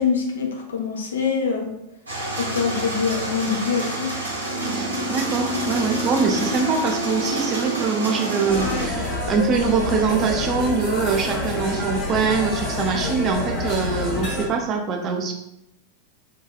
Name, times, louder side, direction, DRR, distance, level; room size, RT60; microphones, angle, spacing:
voice 1, 0.0-1.7 2.4-4.1, left 6 dB, 65° left, 2 dB, 0.5 m, -24 dB
sound 1, 2.1-8.9, right 1 dB, 80° right, 0.9 m, -27 dB
voice 2, 4.7-15.3, right 5 dB, 30° right, 2 dB, 0.4 m, -23 dB
sound 2, 8.5-14.5, left 1 dB, 45° left, 0.8 m, -27 dB
2.8 x 2.3 x 2.3 m, 0.83 s
figure-of-eight pair, 90°, 0 cm